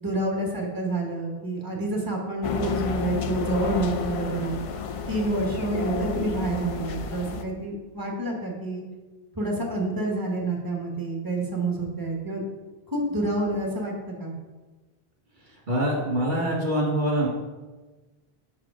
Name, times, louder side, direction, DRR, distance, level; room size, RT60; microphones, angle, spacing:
voice 1, 0.0-4.6 5.1-8.8 9.3-12.4 12.9-14.3, right 2 dB, 20° right, -1 dB, 1.2 m, -28 dB
sound 1, 2.4-7.4, left 5 dB, 55° left, 0.3 m, -31 dB
voice 2, 15.7-17.3, right 1 dB, 50° right, -2 dB, 1.7 m, -24 dB
5.7 x 4.7 x 5.0 m, 1.3 s
omnidirectional pair, 1.0 m